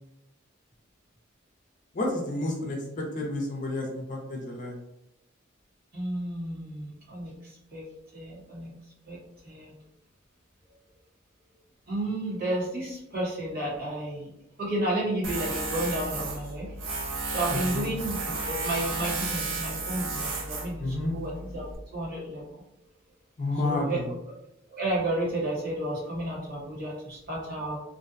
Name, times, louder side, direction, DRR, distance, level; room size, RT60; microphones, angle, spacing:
voice 1, 1.9-4.8 17.5-17.9 20.8-21.1 23.4-24.1, left 2 dB, 40° left, -1 dB, 0.5 m, -30 dB
voice 2, 5.9-7.3 7.7-7.8 8.1-8.7 9.1-9.2 9.4-9.7 11.9-14.3 14.6-16.7 17.3-22.6 23.6-24.0 24.8-27.8, right 1 dB, 45° right, -6 dB, 1.1 m, -32 dB
Tools, 15.2-21.8, right 3 dB, 70° right, 0.5 m, -33 dB
2.6 x 2.1 x 2.5 m, 0.86 s
head